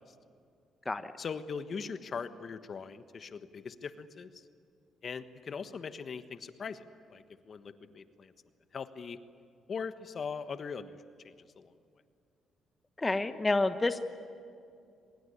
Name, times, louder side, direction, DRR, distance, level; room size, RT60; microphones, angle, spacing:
voice 1, 1.2-4.5 5.0-6.8 7.1-8.3 8.7-9.2 9.7-11.7, left 5 dB, 50° left, 11 dB, 1.3 m, -41 dB
voice 2, 13.0-14.0, left 2 dB, 20° left, 10 dB, 1.1 m, -29 dB
24.0 x 21.5 x 9.7 m, 2.5 s
cardioid pair, 90°, 0 cm